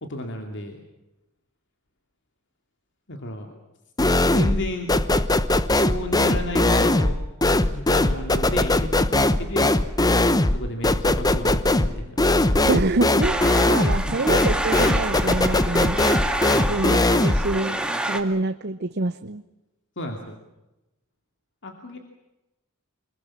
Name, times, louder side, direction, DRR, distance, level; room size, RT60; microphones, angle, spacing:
voice 1, 0.0-0.8 3.1-3.6 4.2-4.9 5.8-7.2 7.6-9.7 10.5-12.2 13.9-14.3 16.5-16.7 20.0-20.4 21.6-22.0, left 1 dB, 60° left, 4 dB, 2.7 m, -32 dB
sound 1, 4.0-4.6 4.9-17.5, left 2 dB, 20° left, 1.0 m, -20 dB
voice 2, 12.6-16.1 16.7-17.0 17.2-19.4, right 2 dB, 50° right, 10 dB, 0.8 m, -26 dB
sound 2, 13.2-18.2, right 1 dB, 5° right, 1.9 m, -28 dB
26.0 x 22.5 x 7.3 m, 0.97 s
head